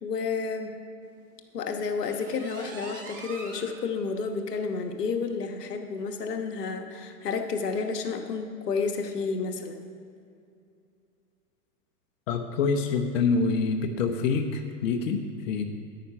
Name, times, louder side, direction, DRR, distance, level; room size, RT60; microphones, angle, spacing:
voice 1, 0.0-0.7 1.5-9.8, left 5 dB, 85° left, 5 dB, 1.2 m, -31 dB
sound 1, 2.0-3.7 4.2-4.3 4.7-4.8 5.2-5.3 6.2-6.3, right 3 dB, 15° right, 0.3 m, -43 dB
voice 2, 12.3-15.6, left 4 dB, 55° left, 4 dB, 1.0 m, -26 dB
10.0 x 9.3 x 5.7 m, 2.5 s
hypercardioid pair, 135°, 46 cm